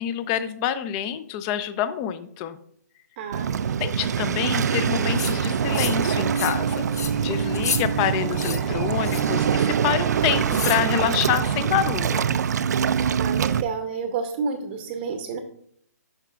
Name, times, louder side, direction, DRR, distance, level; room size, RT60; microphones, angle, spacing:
voice 1, 0.0-2.6 3.8-6.9 7.2-12.3, left 10 dB, 25° left, 13 dB, 0.4 m, -27 dB
voice 2, 3.2-3.8 13.2-15.4, right 5 dB, 30° right, 5 dB, 0.7 m, -30 dB
Waves surf, 3.3-13.6, right 7 dB, 70° right, 0.4 m, -24 dB
sound 1, 4.0-12.1, right 2 dB, 5° right, 0.9 m, -39 dB
sound 2, 5.1-5.3 5.7-6.0 6.3-6.6 6.9-7.1 7.5-7.8 8.3-8.6 9.0-9.3 10.5-10.8, left 6 dB, 65° left, 0.8 m, -30 dB
12.0 x 4.9 x 2.4 m, 0.66 s
hypercardioid pair, 150°, 9 cm